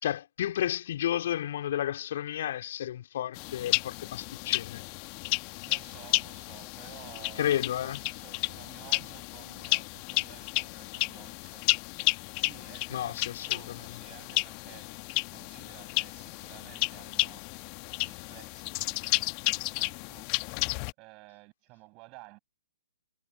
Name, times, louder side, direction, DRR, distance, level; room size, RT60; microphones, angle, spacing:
voice 1, 0.0-4.8 7.4-8.0 12.9-13.9, left 11 dB, 45° left, 3.8 m, -32 dB
sound 1, 3.3-20.9, left 40 dB or more, 30° left, 1.5 m, -32 dB
voice 2, 5.7-11.7 12.0-12.1 12.4-14.9 15.3-20.3 21.0-22.4, right 27 dB, 25° right, 7.8 m, -53 dB
figure-of-eight pair, 125°, 0 cm